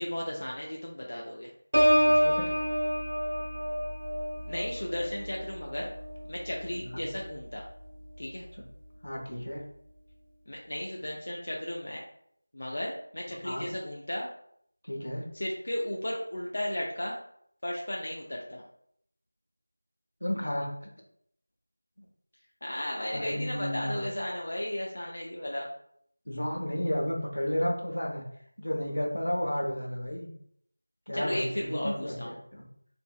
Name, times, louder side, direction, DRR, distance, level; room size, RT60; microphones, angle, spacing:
voice 1, 0.0-1.5 4.5-5.9 6.3-7.6 8.2-8.5 10.5-12.0 12.5-14.3 15.3-17.2 17.6-18.6 22.6-25.7 31.1-32.3, left 1 dB, 50° left, -2 dB, 0.4 m, -34 dB
Piano, 1.7-7.4 7.8-8.2, equal, 65° right, 0.8 m, -28 dB
voice 2, 2.1-2.5 6.7-7.1 9.0-9.6 13.3-13.7 14.8-15.3 20.2-20.7 23.1-24.0 26.3-28.2 28.6-30.3 31.1-32.2 32.5-32.6, equal, 80° left, 0 dB, 0.8 m, -32 dB
2.8 x 2.5 x 2.3 m, 0.68 s
figure-of-eight pair, 175°, 0 cm